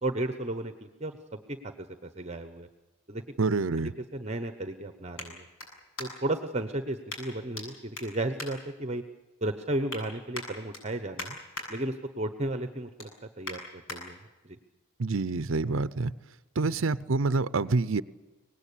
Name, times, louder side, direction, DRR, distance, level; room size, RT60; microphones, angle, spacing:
voice 1, 0.0-2.7 3.1-3.2 3.8-5.5 6.0-9.0 9.4-11.4 11.7-13.1 13.4-14.6, right 1 dB, 30° right, 1.1 m, -34 dB
sound 1, 2.7-6.4 7.1-7.7 7.9-9.2 9.6-10.0 10.3-11.7 12.1-12.4 12.7-14.0 14.5-14.6, left 2 dB, 75° left, 7.7 m, -42 dB
voice 2, 3.4-3.9 15.0-16.1 16.6-18.0, right 3 dB, 70° right, 0.7 m, -27 dB
24.5 x 19.0 x 8.5 m
head